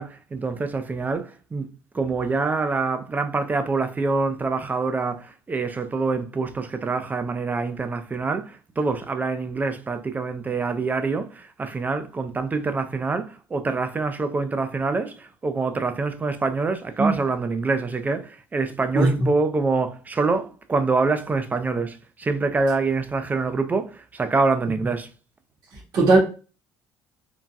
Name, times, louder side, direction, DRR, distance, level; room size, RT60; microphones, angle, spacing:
voice 1, 0.0-1.7 1.9-25.1, right 4 dB, 20° right, 0.4 m, -25 dB
voice 2, 18.9-19.3 25.9-26.2, right 2 dB, 60° right, 1.4 m, -17 dB
3.9 x 2.2 x 2.2 m
supercardioid pair, 90°, 8 cm